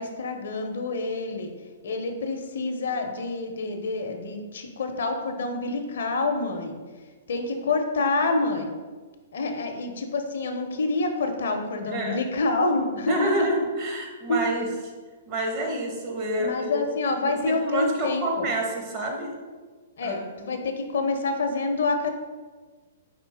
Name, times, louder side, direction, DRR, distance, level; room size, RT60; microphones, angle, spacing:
voice 1, 0.0-1.5 1.8-6.8 7.3-8.7 9.3-13.5 14.3-14.5 16.4-18.5 20.0-22.1, left 3 dB, 70° left, 6 dB, 0.5 m, -27 dB
voice 2, 11.9-12.2 13.1-14.7 15.3-16.8 17.2-19.4 20.0-20.2, right 1 dB, 40° right, 1 dB, 1.0 m, -28 dB
5.0 x 2.9 x 3.4 m, 1.4 s
hypercardioid pair, 120°, 0 cm